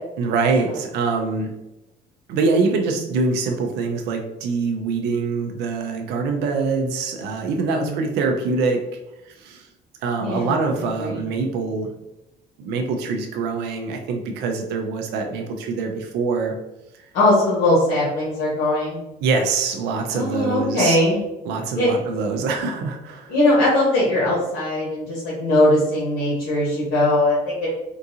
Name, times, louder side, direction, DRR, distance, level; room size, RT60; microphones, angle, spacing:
voice 1, 0.2-1.5 2.3-8.8 9.3-9.7 10.0-11.9 12.6-16.5 19.2-21.0 21.5-23.3, right 4 dB, 85° right, 3 dB, 0.5 m, -24 dB
voice 2, 7.7-8.0 10.2-10.5 11.0-11.2 17.1-19.0 20.1-21.2 21.7-21.9 23.3-27.7, left 1 dB, 85° left, -6 dB, 1.3 m, -20 dB
3.7 x 2.4 x 2.7 m, 0.93 s
cardioid pair, 110°, 17 cm